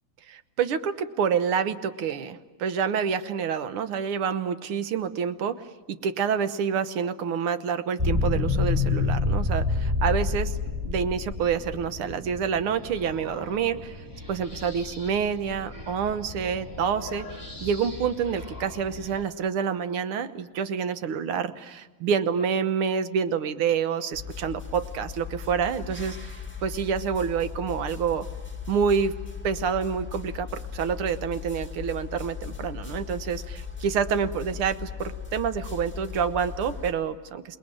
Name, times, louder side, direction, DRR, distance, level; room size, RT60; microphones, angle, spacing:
voice 1, 0.3-10.6 10.9-28.3 28.7-29.1 29.4-37.6, right 7 dB, 80° right, 11 dB, 1.9 m, -28 dB
sound 1, 8.0-19.2, left 3 dB, 10° right, 3.6 m, -30 dB
sound 2, 24.1-36.9, left 7 dB, 5° left, 2.0 m, -38 dB
28.5 x 20.0 x 9.0 m, 1.2 s
omnidirectional pair, 2.4 m